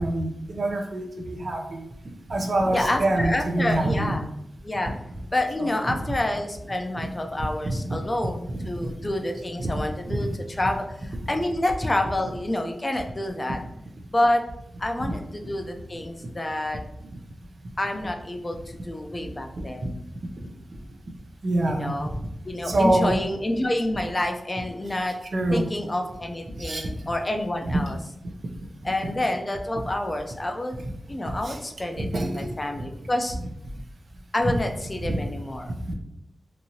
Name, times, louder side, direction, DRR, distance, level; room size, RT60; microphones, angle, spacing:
voice 1, 0.0-1.9 2.3-4.2 5.6-5.9 7.0-7.1 7.6-7.8 8.8-8.9 9.6-9.8 10.2-10.3 19.6-19.9 21.4-21.9 22.6-23.2 25.3-25.8 26.5-26.9 27.6-27.8 30.8-30.9 31.3-31.6 32.0-32.5 35.0-35.2 35.9-36.0, right 1 dB, 65° right, 3 dB, 0.5 m, -26 dB
voice 2, 2.7-4.2 4.6-4.9 5.3-10.3 10.6-13.6 14.1-14.4 14.8-16.8 17.8-20.0 21.7-22.1 22.4-25.2 25.5-28.0 28.8-30.8 31.1-33.4 34.3-35.7, left 1 dB, 30° left, 4 dB, 0.5 m, -28 dB
2.9 x 2.6 x 2.7 m, 0.80 s
cardioid pair, 50°, 0 cm